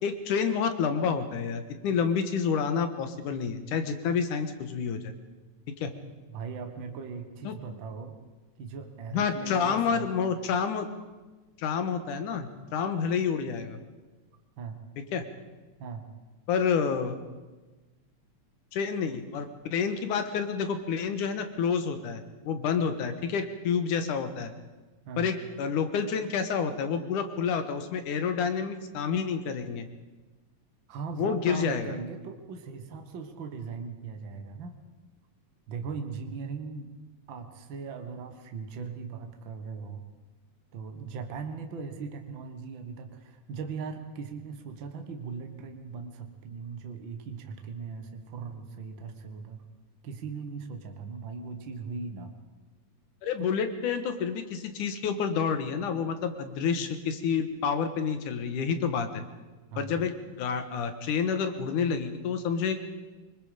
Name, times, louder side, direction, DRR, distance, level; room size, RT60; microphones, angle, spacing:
voice 1, 0.0-5.1 5.8-5.9 7.4-7.5 9.1-10.9 11.6-13.8 15.1-15.3 16.5-17.2 18.7-24.5 25.2-29.9 31.2-31.9 53.2-59.2 59.8-62.9, left 6 dB, 80° left, 8 dB, 3.0 m, -29 dB
voice 2, 6.3-8.2 8.6-10.1 14.6-14.8 15.8-16.0 25.1-25.3 30.9-34.7 35.7-36.9 37.3-40.1 40.7-49.6 50.0-52.3 53.4-53.5 59.7-60.0, right 5 dB, 45° right, 5 dB, 1.9 m, -39 dB
25.0 x 22.5 x 5.1 m, 1.2 s
omnidirectional pair, 3.6 m